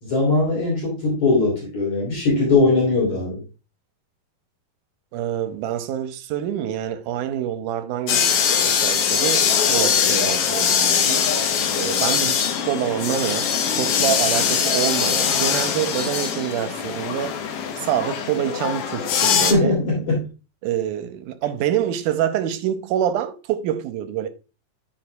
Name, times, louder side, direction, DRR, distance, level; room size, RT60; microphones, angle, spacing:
voice 1, 0.0-3.4 19.5-20.3, left 3 dB, 45° left, 4.0 m, -20 dB
voice 2, 5.1-11.3 11.8-17.4 17.8-19.7 20.6-24.3, right 10 dB, 80° right, 2.1 m, -26 dB
sound 1, 8.1-19.5, left 7 dB, 80° left, 1.3 m, -21 dB
13.0 x 5.2 x 2.2 m
omnidirectional pair, 3.9 m